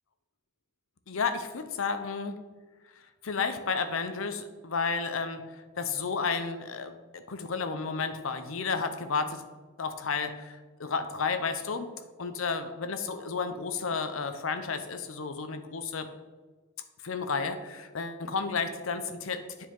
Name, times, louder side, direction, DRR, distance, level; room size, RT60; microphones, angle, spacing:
voice 1, 1.1-2.4 3.2-9.4 9.8-11.9 12.2-16.1 17.0-19.4, left 5 dB, 65° left, 9 dB, 0.7 m, -32 dB
9.7 x 4.6 x 3.8 m, 1.3 s
head